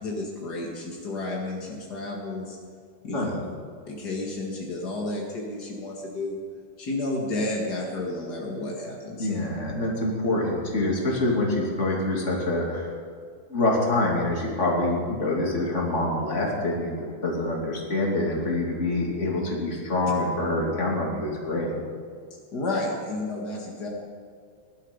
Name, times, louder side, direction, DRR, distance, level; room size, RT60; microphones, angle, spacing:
voice 1, 0.0-2.6 3.0-3.2 3.8-6.4 6.8-9.3 22.5-23.9, left 2 dB, 75° left, -2 dB, 0.9 m, -31 dB
voice 2, 9.2-12.9 13.5-21.7, left 2 dB, 25° left, -2 dB, 2.0 m, -26 dB
19.5 x 11.5 x 5.4 m, 2.2 s
omnidirectional pair, 4.9 m